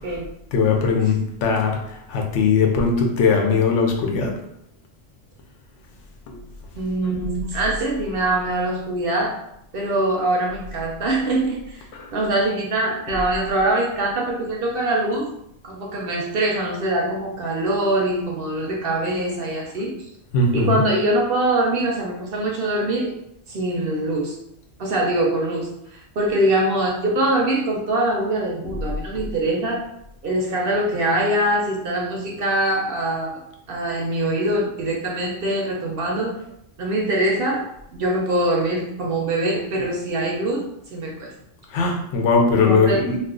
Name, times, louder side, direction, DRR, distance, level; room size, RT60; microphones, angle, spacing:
voice 1, 0.5-4.3 6.3-6.4 11.9-12.1 13.1-13.2 20.3-20.8 28.6-28.8 29.2-29.3 41.7-43.2, left 4 dB, 75° left, 2 dB, 0.9 m, -20 dB
voice 2, 6.8-9.4 9.7-11.8 12.1-15.3 15.6-19.9 20.5-23.1 23.5-24.4 24.8-29.8 30.2-33.4 33.7-36.4 36.8-37.7 37.9-40.6 40.9-41.3 42.5-43.0, right 1 dB, 60° right, -1 dB, 0.7 m, -23 dB
2.4 x 2.4 x 3.6 m, 0.77 s
omnidirectional pair, 1.2 m